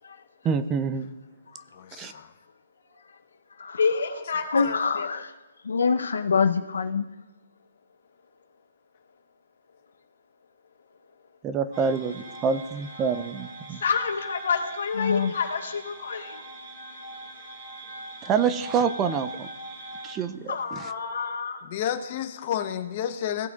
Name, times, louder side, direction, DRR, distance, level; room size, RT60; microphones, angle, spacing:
voice 1, 0.4-1.1 2.0-2.1 11.4-13.8 18.2-19.5 20.0-20.5, right 6 dB, 15° right, 11 dB, 0.4 m, -26 dB
voice 2, 1.7-2.3 21.6-23.5, left 10 dB, 30° left, 8 dB, 0.8 m, -30 dB
voice 3, 3.8-5.2 13.8-16.4 20.5-21.6, left 5 dB, 60° left, 2 dB, 1.9 m, -28 dB
voice 4, 4.5-5.3 5.6-7.1 15.0-15.3, left 5 dB, 80° left, 5 dB, 0.7 m, -25 dB
sound 1, 11.7-20.1, right 1 dB, 35° right, 2.7 m, -41 dB
17.5 x 8.1 x 2.4 m, 1.2 s
hypercardioid pair, 165°, 0 cm